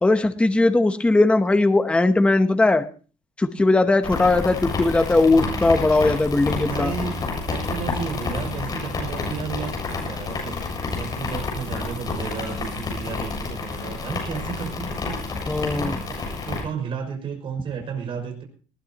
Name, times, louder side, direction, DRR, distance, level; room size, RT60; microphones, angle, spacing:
voice 1, 0.0-2.8 3.4-6.9 15.5-16.0, left 2 dB, 10° left, 8 dB, 0.9 m, -19 dB
sound 1, 4.0-16.6, left 4 dB, 30° left, 7.6 m, -29 dB
voice 2, 6.4-10.6 10.9-15.2 15.6-18.4, right 6 dB, 45° right, 3 dB, 5.9 m, -33 dB
20.0 x 19.0 x 2.9 m, 0.39 s
cardioid pair, 165°, 13 cm